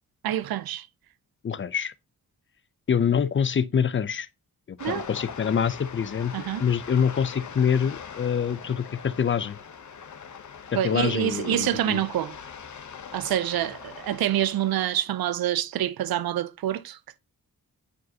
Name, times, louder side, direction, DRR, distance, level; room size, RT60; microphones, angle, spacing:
voice 1, 0.2-0.9 4.8-5.1 6.3-6.7 10.7-12.4 13.1-17.2, right 12 dB, 80° right, 0.5 m, -27 dB
voice 2, 1.4-1.9 2.9-4.3 4.7-6.3 6.6-9.6 10.7-12.0, left 7 dB, 35° left, 0.4 m, -25 dB
sound 1, 4.8-15.1, left 7 dB, 55° left, 0.9 m, -41 dB
9.3 x 4.7 x 2.8 m
wide cardioid pair, 90°, 36 cm